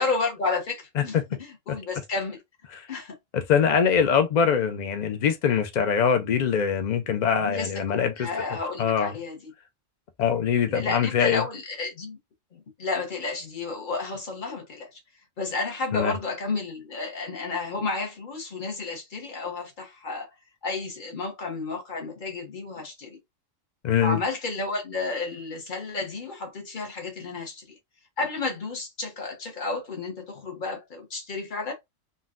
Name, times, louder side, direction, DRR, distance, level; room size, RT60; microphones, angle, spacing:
voice 1, 0.0-2.4 2.9-3.2 7.4-9.5 10.6-12.2 12.5-15.0 15.4-20.3 20.6-23.2 24.0-27.8 28.2-31.7, left 3 dB, 40° left, 1.0 m, -32 dB
voice 2, 3.3-8.3 8.8-9.1 10.2-11.4 15.9-16.1 23.8-24.2, left 7 dB, 80° left, 0.4 m, -23 dB
3.9 x 2.2 x 2.4 m
omnidirectional pair, 1.4 m